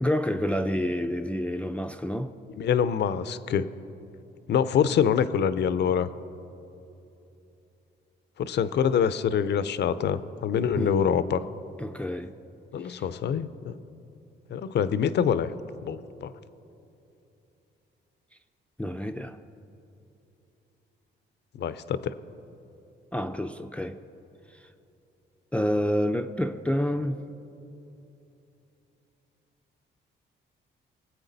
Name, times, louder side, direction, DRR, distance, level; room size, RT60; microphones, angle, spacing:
voice 1, 0.0-2.3 10.8-11.0 11.8-12.3 12.8-13.1 18.8-19.4 23.1-24.0 25.5-27.2, equal, 5° left, 0.5 m, -28 dB
voice 2, 2.5-3.7 4.5-6.1 8.4-11.4 12.7-13.8 14.5-15.5 15.8-16.3 21.6-22.2, left 8 dB, 60° left, 0.6 m, -25 dB
24.0 x 8.2 x 4.0 m
cardioid pair, 90°, 20 cm